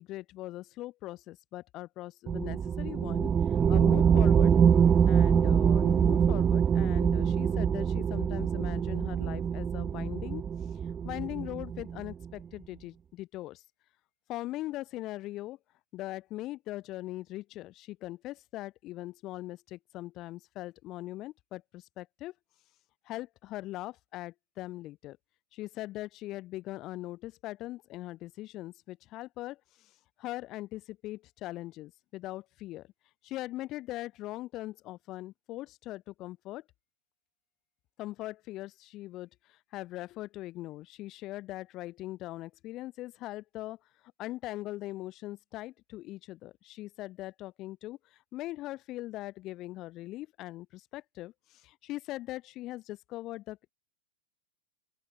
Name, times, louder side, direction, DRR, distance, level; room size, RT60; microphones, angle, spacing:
voice 1, 0.0-4.5 5.1-10.5 10.8-13.6 14.3-15.6 15.9-22.3 23.1-25.2 25.5-29.9 30.2-32.9 33.2-36.6 38.0-43.8 44.2-53.7, left 16 dB, 40° left, 5.1 m, -41 dB
sound 1, 2.3-12.3, right 7 dB, 25° right, 0.9 m, -25 dB
open air
hypercardioid pair, 105°, 0 cm